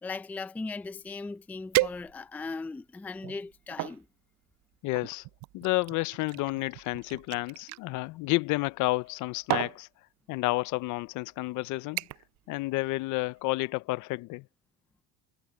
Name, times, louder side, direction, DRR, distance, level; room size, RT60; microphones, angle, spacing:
voice 1, 0.0-4.1, left 3 dB, 5° left, 0.4 m, -38 dB
sound 1, 1.1-1.2 1.7-2.5 3.1-4.0 4.9-7.8 8.9-9.2 9.5-9.8 10.7-10.8 11.3-11.5 12.0-12.4 12.7-13.0 13.4-13.5, right 20 dB, 55° right, 0.5 m, -33 dB
voice 2, 4.8-5.2 5.5-9.9 10.3-12.0 12.5-14.4, left 21 dB, 60° left, 0.6 m, -30 dB
cardioid pair, 135°, 34 cm